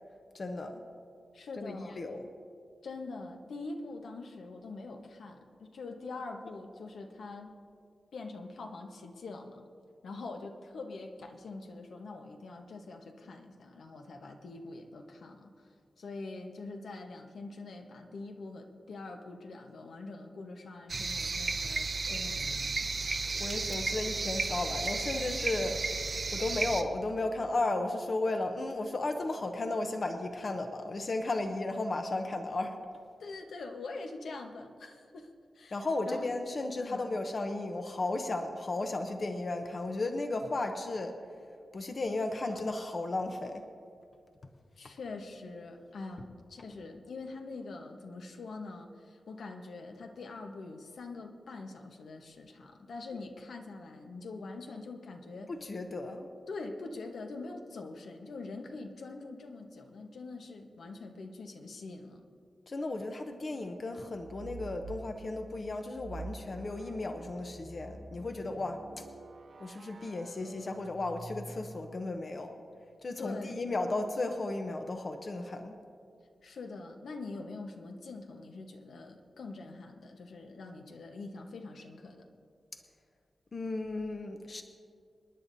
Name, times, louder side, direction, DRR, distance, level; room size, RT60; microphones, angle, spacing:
voice 1, 0.3-0.8 1.6-2.3 23.4-25.8 26.3-32.8 35.7-41.2 41.7-43.6 55.5-56.3 62.7-68.8 69.6-72.6 73.0-75.7 83.5-84.6, left 2 dB, 40° left, 5 dB, 0.7 m, -34 dB
voice 2, 1.3-2.0 2.8-7.6 8.1-9.6 10.0-15.7 16.0-22.8 33.2-36.3 36.8-37.0 44.8-55.5 56.5-62.2 73.2-73.7 76.4-82.3, left 3 dB, 75° left, 4 dB, 1.1 m, -44 dB
sound 1, 20.9-26.8, right 4 dB, 40° right, 0.7 m, -33 dB
sound 2, 64.1-65.1 65.9-71.9, right 3 dB, 60° right, 1.1 m, -47 dB
27.5 x 10.0 x 2.7 m, 2.3 s
wide cardioid pair, 160°, 0 cm